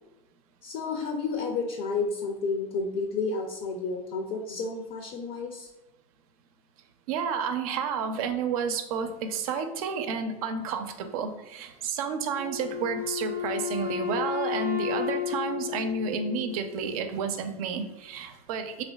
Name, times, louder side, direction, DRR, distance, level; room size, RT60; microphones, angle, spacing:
voice 1, 0.6-5.7, left 4 dB, 55° left, 2 dB, 0.5 m, -31 dB
voice 2, 7.1-18.8, right 5 dB, 75° right, 7 dB, 0.4 m, -31 dB
Wind instrument woodwind instrument, 12.4-16.9, left 8 dB, 10° right, 0.5 m, -33 dB
3.3 x 2.5 x 2.2 m, 1.0 s
hypercardioid pair, 95°, 19 cm